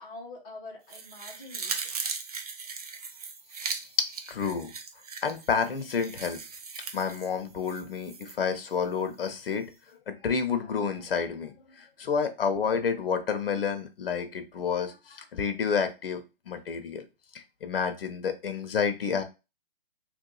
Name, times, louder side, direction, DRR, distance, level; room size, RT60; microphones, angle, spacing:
voice 1, 0.0-2.1, left 2 dB, 20° left, -3 dB, 0.9 m, -45 dB
sound 1, 0.9-8.4 8.7-8.8, right 5 dB, 40° right, 0.4 m, -38 dB
voice 2, 4.0-4.7 5.2-6.4 6.9-9.7 10.1-17.1 17.3-19.2, left 6 dB, 65° left, 8 dB, 0.8 m, -30 dB
3.1 x 2.7 x 3.8 m, 0.28 s
hypercardioid pair, 165°, 31 cm